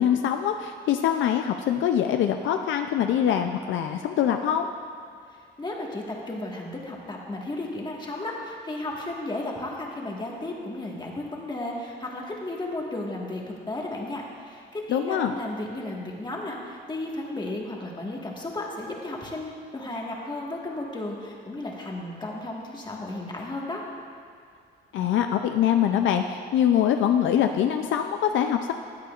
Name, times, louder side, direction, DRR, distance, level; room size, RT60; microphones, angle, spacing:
voice 1, 0.0-4.7 14.9-15.3 24.9-28.7, left 9 dB, 75° left, 6 dB, 0.5 m, -23 dB
voice 2, 5.6-23.8, left 2 dB, 20° left, -1 dB, 1.6 m, -34 dB
13.5 x 8.6 x 2.4 m, 2.4 s
cardioid pair, 90°, 20 cm